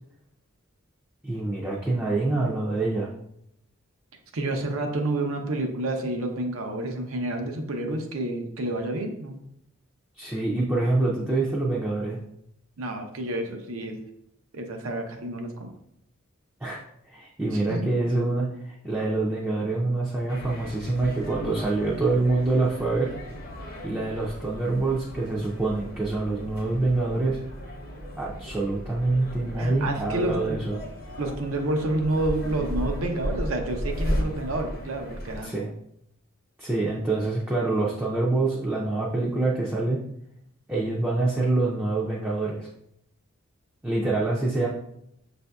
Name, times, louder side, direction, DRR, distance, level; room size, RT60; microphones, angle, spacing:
voice 1, 1.2-3.1 10.2-12.2 16.6-16.8 17.1-23.1 23.8-27.4 28.2-30.8 35.4-35.7 36.6-40.0 40.7-42.7 43.8-44.7, right 2 dB, 10° right, -5 dB, 0.4 m, -26 dB
voice 2, 4.3-9.4 12.8-14.0 14.5-15.7 17.5-17.9 29.6-30.6 31.2-35.5, right 2 dB, 80° right, 3 dB, 0.6 m, -29 dB
sound 1, 20.3-35.4, equal, 45° left, 0.7 m, -35 dB
6.2 x 2.6 x 2.2 m, 0.76 s
head